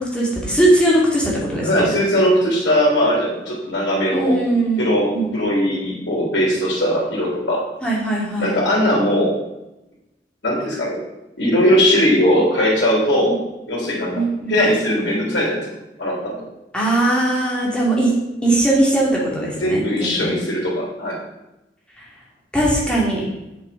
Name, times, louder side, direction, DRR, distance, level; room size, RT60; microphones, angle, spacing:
voice 1, 0.0-1.9 4.1-5.4 7.8-8.5 13.2-13.3 14.1-14.6 16.7-18.1 18.4-20.4 22.5-23.2, right 1 dB, 5° left, -5 dB, 2.5 m, -20 dB
voice 2, 1.6-4.4 4.8-7.6 8.4-9.3 10.4-11.0 11.4-13.3 13.7-14.1 14.5-15.7 16.0-16.3 19.6-21.2, equal, 80° left, -4 dB, 3.1 m, -19 dB
7.2 x 7.1 x 5.2 m, 0.95 s
head